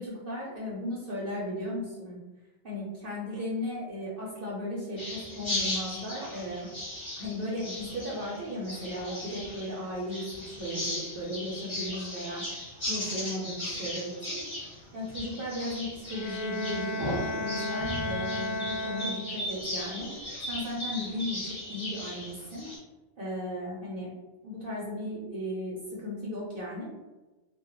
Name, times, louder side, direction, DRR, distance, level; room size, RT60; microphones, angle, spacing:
voice 1, 0.0-2.2 2.6-6.7 7.2-12.4 12.9-14.4 14.9-20.1 20.5-22.7 23.2-24.1 24.4-26.8, left 1 dB, 60° right, -5 dB, 0.7 m, -36 dB
sound 1, 5.0-22.8, left 1 dB, 30° left, 0.7 m, -37 dB
Bowed string instrument, 16.1-19.6, left 1 dB, 60° left, 0.5 m, -34 dB
2.2 x 2.1 x 2.9 m, 1.1 s
omnidirectional pair, 1.2 m